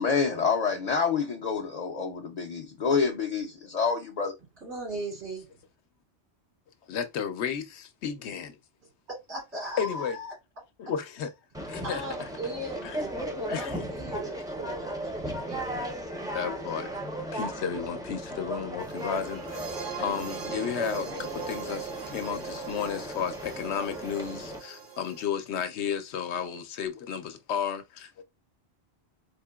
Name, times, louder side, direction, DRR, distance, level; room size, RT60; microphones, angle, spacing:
voice 1, 0.0-4.4, left 5 dB, 50° left, 0.5 m, -27 dB
voice 2, 4.6-5.5 9.3-10.3 11.8-15.6, right 1 dB, 90° right, 2.6 m, -37 dB
voice 3, 6.9-8.6 9.8-10.2 10.8-11.3 11.7-12.0 12.8-13.0 13.5-13.7 16.3-16.9 17.3-19.6 20.0-28.2, left 7 dB, 80° left, 0.9 m, -33 dB
Conversation, 11.5-24.6, right 1 dB, 5° right, 0.4 m, -36 dB
sound 1, 18.8-25.2, right 7 dB, 55° right, 0.7 m, -41 dB
4.3 x 2.8 x 2.2 m
omnidirectional pair, 1.1 m